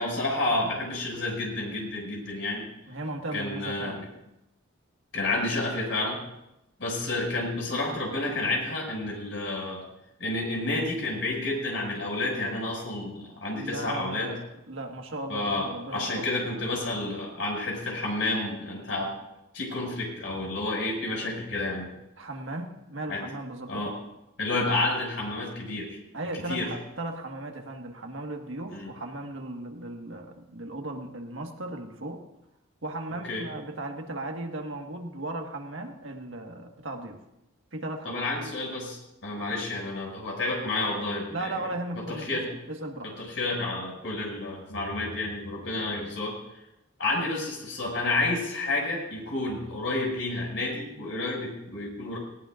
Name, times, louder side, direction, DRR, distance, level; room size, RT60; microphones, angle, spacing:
voice 1, 0.0-2.6 3.3-4.0 5.1-6.2 6.8-9.8 10.2-14.3 15.3-19.1 19.5-21.9 23.1-23.2 23.7-23.9 24.4-26.0 26.5-26.7 28.7-28.9 33.3-33.4 38.0-41.5 42.1-42.5 43.2-46.3 47.0-52.2, left 2 dB, 70° left, -1 dB, 6.0 m, -30 dB
voice 2, 2.9-4.1 13.5-16.5 22.2-23.9 26.1-32.2 32.8-37.2 37.7-38.2 41.3-43.1, right 2 dB, 75° right, 3 dB, 1.6 m, -36 dB
19.0 x 18.0 x 2.5 m, 0.90 s
head